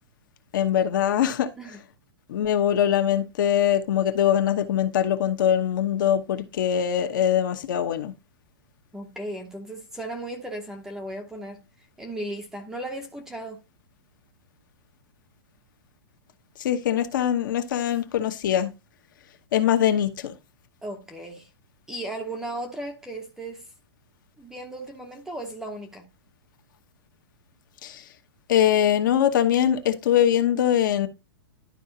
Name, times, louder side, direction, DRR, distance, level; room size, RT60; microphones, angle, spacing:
voice 1, 0.5-1.5 2.3-8.1 16.6-18.7 19.5-20.3 27.8-28.0 28.5-31.1, left 10 dB, 50° left, 1.0 m, -22 dB
voice 2, 8.9-11.6 12.0-13.6 20.8-21.5 21.9-23.6 24.4-26.1, right 1 dB, 5° right, 0.7 m, -36 dB
12.0 x 4.8 x 2.7 m
hypercardioid pair, 175°, 14 cm